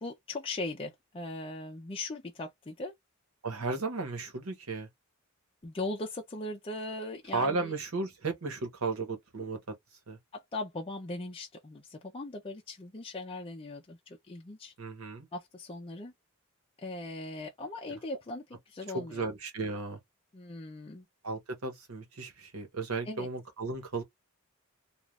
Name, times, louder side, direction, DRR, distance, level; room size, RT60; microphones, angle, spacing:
voice 1, 0.0-2.9 5.6-7.7 10.3-14.7 15.3-16.1 16.8-19.3 20.3-21.1 23.1-23.3, left 2 dB, 25° left, 0.5 m, -39 dB
voice 2, 3.4-4.9 7.3-9.6 10.1-10.2 14.8-15.3 18.9-20.0 21.2-24.0, right 3 dB, 85° right, 1.2 m, -34 dB
3.2 x 2.4 x 2.4 m
head